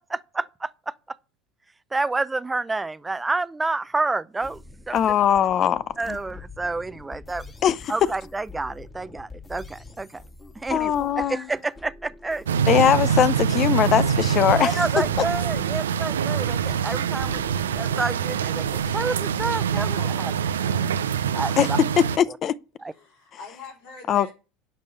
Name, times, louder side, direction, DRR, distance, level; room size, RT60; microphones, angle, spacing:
voice 1, 0.1-1.2 1.9-4.6 4.9-5.0 6.0-7.4 7.9-10.2 10.6-10.9 11.2-12.4 14.5-17.4 17.7-20.3 21.3-21.8 22.8-22.9, right 3 dB, 15° right, 0.6 m, -29 dB
sound 1, 4.4-19.5, left 3 dB, 25° left, 1.9 m, -45 dB
voice 2, 4.9-6.2 7.6-7.9 10.7-11.5 12.7-14.8 21.6-21.7 22.0-22.5 24.1-24.3, left 9 dB, 45° left, 0.7 m, -21 dB
sound 2, 12.5-22.2, right 7 dB, 85° right, 0.5 m, -24 dB
voice 3, 19.9-21.6 22.9-24.3, left 4 dB, 70° left, 4.4 m, -44 dB
11.0 x 5.4 x 6.6 m
hypercardioid pair, 80°, 0 cm